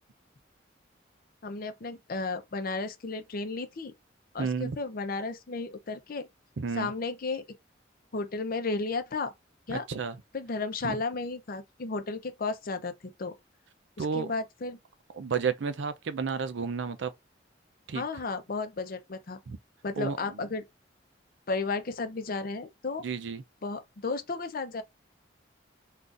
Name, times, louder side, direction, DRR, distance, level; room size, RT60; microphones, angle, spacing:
voice 1, 1.4-3.9 4.3-6.3 6.7-7.4 8.1-9.3 9.7-9.8 10.3-13.3 14.0-14.8 17.9-19.4 19.8-20.6 21.5-23.0 23.6-24.8, left 3 dB, 50° left, 0.6 m, -33 dB
voice 2, 4.4-4.8 6.6-6.9 9.7-10.2 10.8-11.0 14.0-14.3 15.1-17.1 17.9-18.0 19.5-19.6 20.0-20.4 23.0-23.4, right 5 dB, 75° right, 0.5 m, -31 dB
3.9 x 2.4 x 2.4 m
head